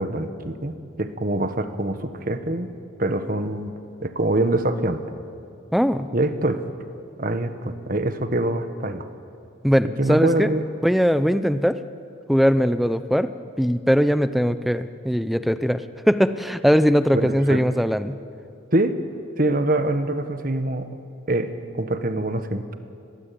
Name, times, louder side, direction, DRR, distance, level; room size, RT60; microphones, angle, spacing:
voice 1, 0.0-2.7 3.0-3.7 4.0-5.0 6.1-6.6 7.2-9.1 9.8-10.6 17.1-17.6 18.7-19.0 19.4-20.9 21.3-22.7, right 1 dB, 45° right, 9 dB, 1.5 m, -24 dB
voice 2, 5.7-6.1 9.6-10.5 10.8-11.8 12.3-13.3 13.6-15.8 16.1-18.2, equal, ahead, 12 dB, 0.7 m, -20 dB
30.0 x 21.5 x 8.6 m, 2.6 s
head